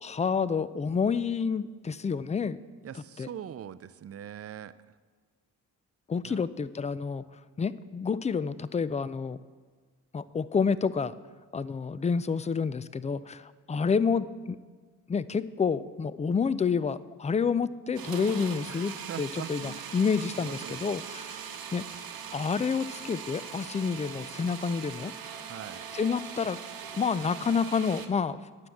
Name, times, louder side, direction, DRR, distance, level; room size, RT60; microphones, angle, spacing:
voice 1, 0.0-2.6 3.2-3.3 6.1-7.2 7.6-9.4 10.1-11.1 11.5-14.6 15.1-18.9 19.2-21.4 21.7-22.0 22.3-25.1 25.9-26.6 26.9-28.4, left 5 dB, 20° left, 17 dB, 0.4 m, -29 dB
voice 2, 2.8-5.0 6.2-6.4 18.7-20.8 25.4-25.9, right 9 dB, 40° right, 16 dB, 0.5 m, -43 dB
sound 1, 18.0-28.1, right 7 dB, 60° right, 1.0 m, -41 dB
9.8 x 6.2 x 7.0 m, 1.5 s
supercardioid pair, 50°, 40 cm